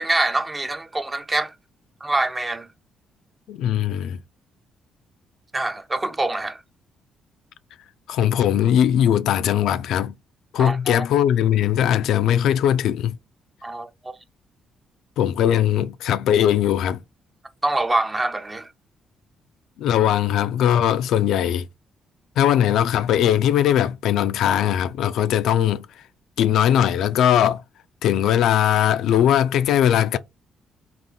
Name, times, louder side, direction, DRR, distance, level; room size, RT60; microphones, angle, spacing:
voice 1, 0.0-1.5 2.0-2.7 5.5-6.6 10.6-11.0 13.6-14.2 17.6-18.7, right 2 dB, 20° right, 0.6 m, -25 dB
voice 2, 3.5-4.2 8.1-10.1 10.5-13.2 15.2-17.0 19.8-21.7 22.4-25.9 26.4-27.6 28.0-30.2, left 10 dB, 85° left, 0.3 m, -20 dB
3.9 x 2.5 x 3.5 m
cardioid pair, 90°, 0 cm